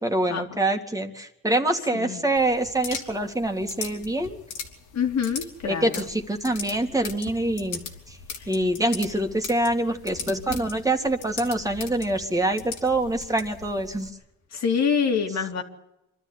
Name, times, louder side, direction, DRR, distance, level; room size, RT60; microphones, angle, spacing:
voice 1, 0.0-4.4 5.6-7.8 8.1-8.2 8.5-14.1 15.3-15.4, right 1 dB, 10° right, 4 dB, 2.2 m, -25 dB
sound 1, 2.4-14.1, left 6 dB, 85° left, 3.3 m, -39 dB
voice 2, 4.9-5.9 14.5-15.6, left 6 dB, 60° left, 4 dB, 2.7 m, -25 dB
26.0 x 12.5 x 9.6 m, 0.89 s
cardioid pair, 90°, 30 cm